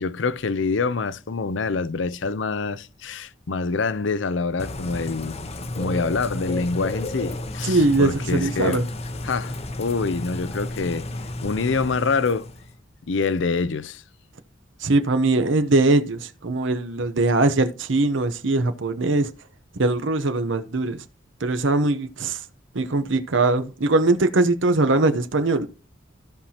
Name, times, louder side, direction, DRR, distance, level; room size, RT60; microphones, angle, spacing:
voice 1, 0.0-5.4 5.8-8.8 9.2-11.1 11.4-12.5 13.1-14.0, left 4 dB, 70° left, 0.6 m, -26 dB
Bird / Rain, 4.6-12.7, left 1 dB, 35° left, 0.8 m, -32 dB
voice 2, 7.6-8.9 14.8-19.3 19.8-21.0 21.4-22.4 22.7-25.7, right 2 dB, 75° right, 0.8 m, -21 dB
15.0 x 5.7 x 2.9 m
head